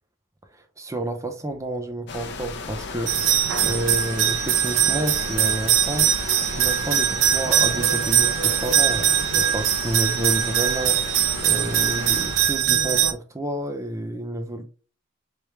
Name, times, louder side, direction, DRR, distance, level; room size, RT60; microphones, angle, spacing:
voice 1, 0.8-6.1 6.5-11.2 11.4-14.6, right 1 dB, 15° right, 0.5 m, -30 dB
sound 1, 2.1-12.6, left 4 dB, 60° left, 0.6 m, -35 dB
sound 2, 3.1-13.1, right 9 dB, 75° right, 0.5 m, -21 dB
3.4 x 3.3 x 3.1 m
head